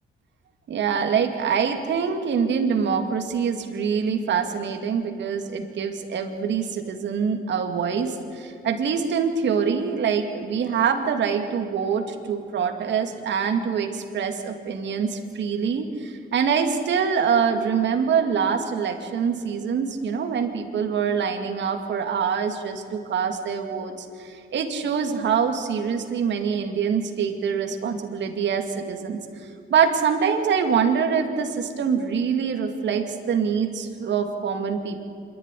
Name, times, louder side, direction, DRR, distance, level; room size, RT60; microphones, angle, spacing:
voice 1, 0.7-29.2 29.7-35.0, right 6 dB, 65° right, 5 dB, 2.2 m, -25 dB
26.0 x 11.5 x 9.9 m, 2.4 s
cardioid pair, 90°, 20 cm